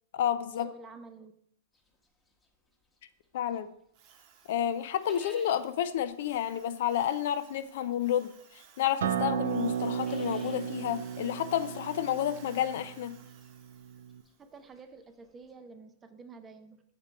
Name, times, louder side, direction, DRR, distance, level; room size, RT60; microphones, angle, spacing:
voice 1, 0.1-0.7 3.3-3.7 4.5-13.1, left 10 dB, 60° left, 12 dB, 0.4 m, -30 dB
voice 2, 0.6-1.3 14.4-16.8, right 4 dB, 20° right, 8 dB, 0.5 m, -49 dB
sound 1, 1.7-3.7 4.1-15.5, left 2 dB, 10° left, 1.0 m, -58 dB
Drill, 3.9-14.4, right 7 dB, 45° right, 0.9 m, -57 dB
Acoustic guitar, 9.0-14.2, right 8 dB, 75° right, 0.4 m, -34 dB
5.9 x 3.7 x 4.4 m, 0.72 s
hypercardioid pair, 115°, 0 cm